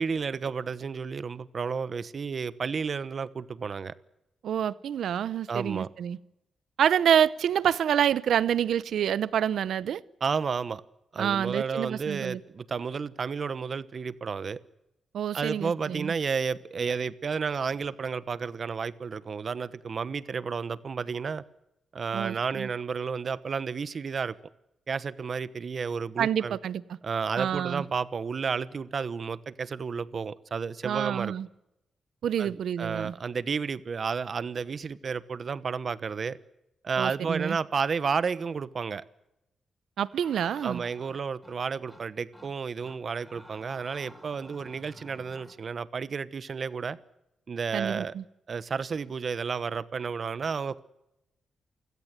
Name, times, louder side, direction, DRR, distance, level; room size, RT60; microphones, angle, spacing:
voice 1, 0.0-3.9 5.5-5.9 10.2-10.8 11.1-14.6 15.3-21.4 21.9-24.4 24.9-26.6 27.0-31.3 32.4-36.4 36.8-39.0 40.6-47.0 47.5-48.1 48.5-50.8, right 5 dB, 45° right, 17 dB, 1.0 m, -32 dB
voice 2, 4.4-6.2 6.8-10.0 11.2-12.4 15.1-16.1 22.1-22.7 26.2-26.8 27.4-27.8 30.8-31.5 32.2-33.1 37.0-37.6 40.0-40.8 47.7-48.2, right 9 dB, 80° right, 19 dB, 0.8 m, -27 dB
sound 1, 40.1-41.6 41.9-42.0 42.3-42.5 42.8-45.6, equal, 5° left, 3.6 m, -51 dB
28.5 x 16.5 x 8.3 m, 0.89 s
wide cardioid pair, 125°, 0 cm